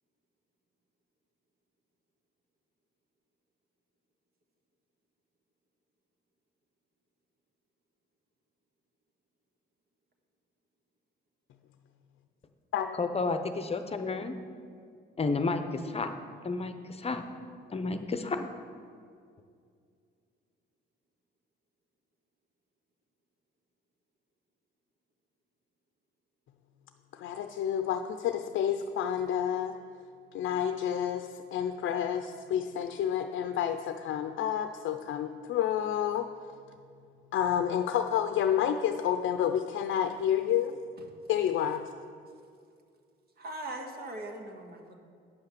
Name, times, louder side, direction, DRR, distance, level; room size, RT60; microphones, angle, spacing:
voice 1, 13.0-14.4 15.2-16.1 16.4-17.3 17.7-18.5, left 3 dB, 30° left, 0.7 m, -31 dB
voice 2, 27.1-29.8 30.3-36.3 37.3-40.8 41.3-41.8, left 9 dB, 75° left, 0.5 m, -29 dB
voice 3, 43.4-44.9, right 1 dB, 50° right, 1.7 m, -40 dB
9.9 x 5.7 x 6.7 m
cardioid pair, 90°, 20 cm